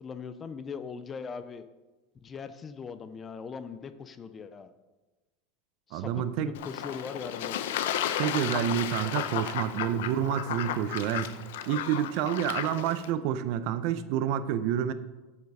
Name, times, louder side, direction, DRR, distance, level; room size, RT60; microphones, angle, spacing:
voice 1, 0.0-1.7 2.2-4.7 5.9-7.6, left 5 dB, 15° left, 12 dB, 0.4 m, -40 dB
voice 2, 5.9-6.5 8.2-11.3 11.7-14.9, right 10 dB, 45° right, 13 dB, 0.5 m, -28 dB
Fowl / Bird / Water, 6.5-13.1, left 10 dB, 80° left, 0.6 m, -33 dB
8.0 x 7.0 x 5.4 m, 1.2 s
supercardioid pair, 175°, 0 cm